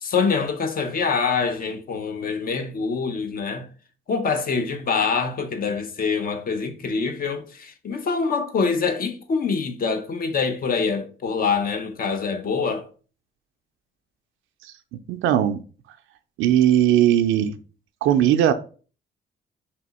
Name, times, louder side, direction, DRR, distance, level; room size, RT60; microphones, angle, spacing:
voice 1, 0.0-3.7 4.1-12.9, left 5 dB, 45° left, 0.7 m, -25 dB
voice 2, 15.1-15.6 16.4-17.5 18.0-18.5, right 11 dB, 85° right, 0.4 m, -18 dB
3.4 x 2.8 x 4.1 m
cardioid pair, 90°, 20 cm